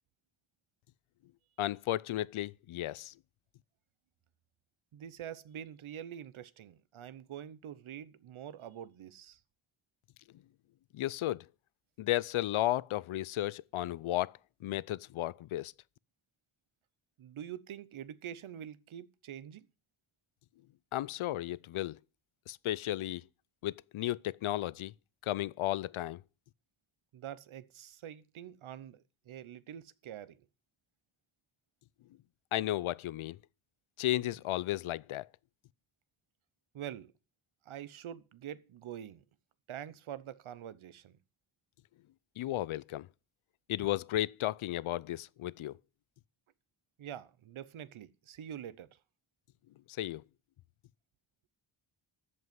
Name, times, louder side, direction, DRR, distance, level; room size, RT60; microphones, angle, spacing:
voice 1, 1.6-3.1 10.9-11.4 12.0-15.7 20.9-22.0 22.5-23.2 23.6-24.9 25.2-26.2 32.5-33.4 34.0-35.2 42.4-43.1 43.7-45.7 50.0-50.2, left 14 dB, 80° left, 0.6 m, -34 dB
voice 2, 4.9-9.4 17.2-19.7 27.1-30.4 36.7-37.1 37.7-39.2 39.7-41.2 47.0-49.0, right 10 dB, 90° right, 0.9 m, -45 dB
14.0 x 5.5 x 9.4 m
cardioid pair, 90°, 48 cm